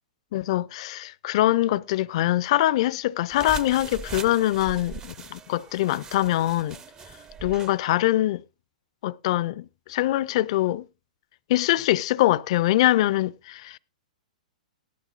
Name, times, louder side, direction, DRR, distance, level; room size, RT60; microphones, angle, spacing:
voice 1, 0.3-6.8 7.4-8.4 9.0-10.8 11.5-13.8, left 15 dB, 45° left, 0.5 m, -23 dB
sound 1, 3.3-7.8, right 5 dB, 15° right, 0.7 m, -40 dB
18.0 x 11.5 x 2.5 m
figure-of-eight pair, 110°, 4 cm